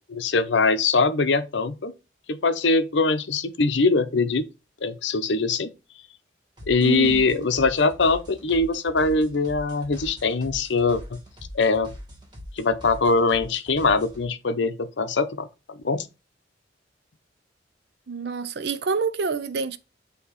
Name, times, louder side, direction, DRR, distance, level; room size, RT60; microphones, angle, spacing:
voice 1, 0.1-1.9 2.3-4.4 4.8-5.7 6.7-11.2 11.5-11.9 12.6-16.1, left 3 dB, 70° left, 0.7 m, -22 dB
sound 1, 6.6-14.2, left 1 dB, 25° right, 2.0 m, -42 dB
voice 2, 6.8-7.2 18.1-19.8, right 5 dB, 60° right, 0.5 m, -27 dB
8.5 x 2.9 x 4.0 m
head